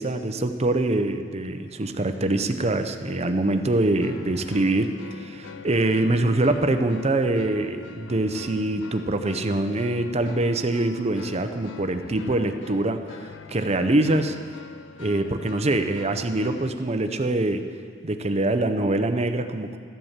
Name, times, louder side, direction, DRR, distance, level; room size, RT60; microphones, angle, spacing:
voice 1, 0.0-14.4 15.0-17.7 18.0-19.8, right 2 dB, 35° right, 8 dB, 0.8 m, -24 dB
sound 1, 4.0-16.7, left 4 dB, 75° left, 0.5 m, -42 dB
14.0 x 8.3 x 7.4 m, 2.1 s
head